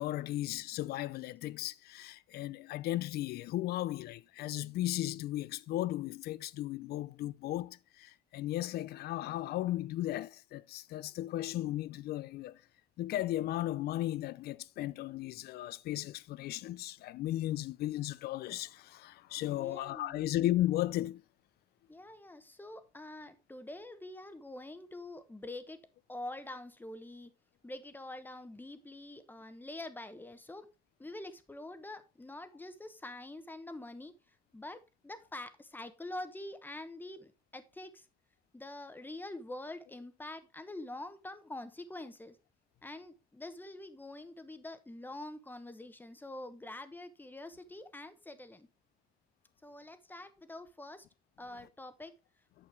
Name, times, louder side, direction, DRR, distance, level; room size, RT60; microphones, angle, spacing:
voice 1, 0.0-12.6 13.0-21.2, left 14 dB, 70° left, 0.5 m, -35 dB
voice 2, 19.6-20.4 21.9-25.8 26.1-27.3 27.6-30.7 31.0-34.1 34.5-38.0 38.5-42.3 42.8-48.7 49.6-51.0 51.4-52.1, left 2 dB, 10° left, 1.0 m, -45 dB
8.8 x 6.5 x 3.4 m
cardioid pair, 110°, 17 cm